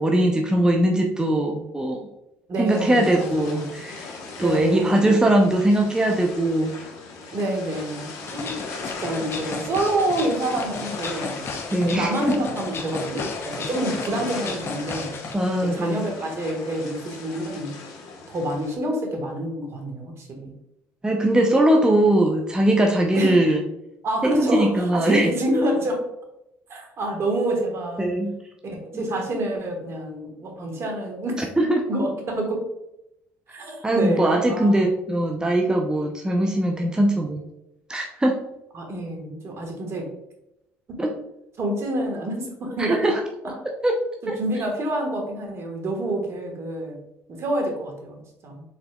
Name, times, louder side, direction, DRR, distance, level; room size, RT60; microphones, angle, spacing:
voice 1, 0.0-2.0 2.6-6.7 11.7-12.4 15.3-16.1 21.0-23.6 24.3-25.3 28.0-28.3 28.9-29.1 31.4-31.9 33.8-37.4 37.9-38.5 41.0-41.1 42.8-43.2 43.8-44.0 44.3-44.4, right 1 dB, 10° right, 2 dB, 0.6 m, -21 dB
voice 2, 2.5-3.7 4.4-5.1 7.3-8.6 9.0-11.4 11.9-15.2 15.6-17.7 18.3-20.5 23.1-23.4 24.0-26.0 26.7-28.1 28.6-31.4 31.9-32.6 33.5-34.7 38.7-40.1 40.9-41.0 41.6-43.1 43.4-43.6 44.4-47.0 47.3-48.6, right 1 dB, 50° right, 2 dB, 1.3 m, -27 dB
sound 1, 2.6-18.8, left 3 dB, 70° left, 1.0 m, -38 dB
sound 2, 8.2-15.3, left 4 dB, 40° left, 0.7 m, -34 dB
4.3 x 3.9 x 2.3 m, 0.84 s
hypercardioid pair, 65°, 6 cm